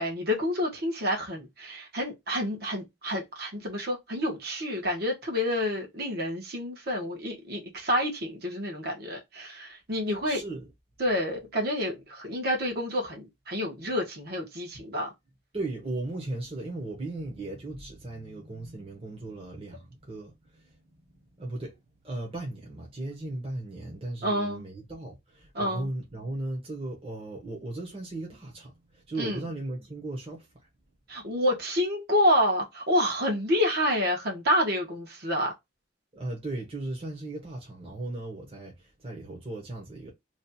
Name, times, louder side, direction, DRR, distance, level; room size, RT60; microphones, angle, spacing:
voice 1, 0.0-10.4 11.0-15.1 24.2-24.6 25.5-25.9 29.2-29.4 31.1-35.5, left 1 dB, 55° right, 1.5 m, -28 dB
voice 2, 10.2-10.7 13.8-13.9 15.5-21.8 22.0-30.5 36.1-40.1, right 2 dB, 30° right, 1.2 m, -37 dB
3.2 x 2.5 x 4.2 m
head